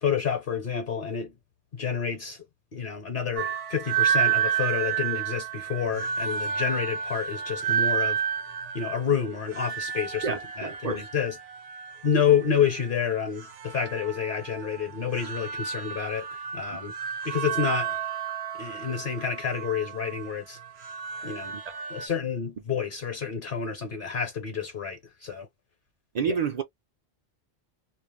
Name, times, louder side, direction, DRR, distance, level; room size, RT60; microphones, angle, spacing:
voice 1, 0.0-1.3 1.7-2.4 2.7-8.2 8.7-11.4 12.0-16.9 17.2-18.0 18.6-20.6 21.2-21.5 21.9-25.5, left 7 dB, 55° left, 1.0 m, -29 dB
sound 1, 3.4-22.1, right 8 dB, 75° right, 0.9 m, -31 dB
voice 2, 10.2-11.0 16.7-16.8 26.1-26.6, right 6 dB, 55° right, 0.5 m, -29 dB
2.4 x 2.0 x 3.1 m
omnidirectional pair, 1.1 m